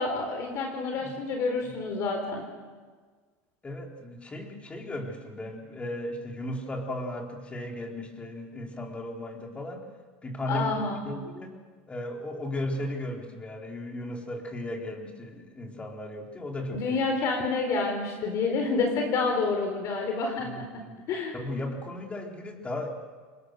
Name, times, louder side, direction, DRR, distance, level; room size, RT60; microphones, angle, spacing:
voice 1, 0.0-2.4 10.5-11.2 16.7-20.8 21.1-21.4, left 3 dB, 50° left, 2 dB, 4.0 m, -28 dB
voice 2, 3.6-9.9 10.2-11.5 11.9-17.0 20.4-20.9 21.3-22.9, left 1 dB, 20° left, 1 dB, 4.2 m, -36 dB
26.0 x 21.0 x 6.7 m, 1.5 s
supercardioid pair, 115°, 7 cm